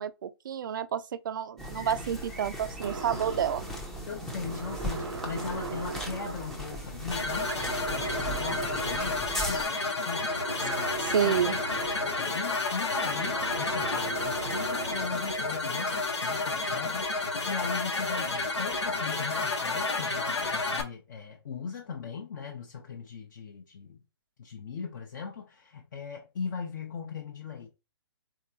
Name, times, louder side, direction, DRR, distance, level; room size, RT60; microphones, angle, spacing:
voice 1, 0.0-3.6 10.7-10.8 11.0-11.5, right 9 dB, 45° right, 0.4 m, -29 dB
sound 1, 1.6-9.7, equal, ahead, 0.6 m, -38 dB
sound 2, 2.8-15.4, right 4 dB, 75° right, 0.7 m, -39 dB
voice 2, 4.1-9.7 10.0-10.9 11.2-11.4 12.0-17.1 17.3-24.0 24.4-27.7, left 5 dB, 45° left, 0.7 m, -39 dB
sound 3, 7.1-20.8, left 3 dB, 80° left, 1.1 m, -31 dB
3.7 x 3.7 x 2.7 m
figure-of-eight pair, 140°, 14 cm